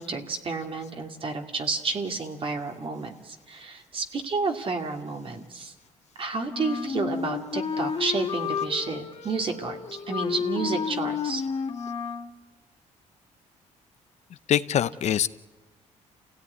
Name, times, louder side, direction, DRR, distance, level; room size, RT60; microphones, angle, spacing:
voice 1, 0.0-5.7 6.2-11.4 14.5-14.6, right 4 dB, 45° right, 3 dB, 2.4 m, -31 dB
Wind instrument woodwind instrument, 6.5-12.3, left 6 dB, 45° left, 2.0 m, -31 dB
voice 2, 14.5-15.3, left 10 dB, 60° left, 15 dB, 0.7 m, -23 dB
27.5 x 17.0 x 9.7 m, 1.2 s
cardioid pair, 100°, 13 cm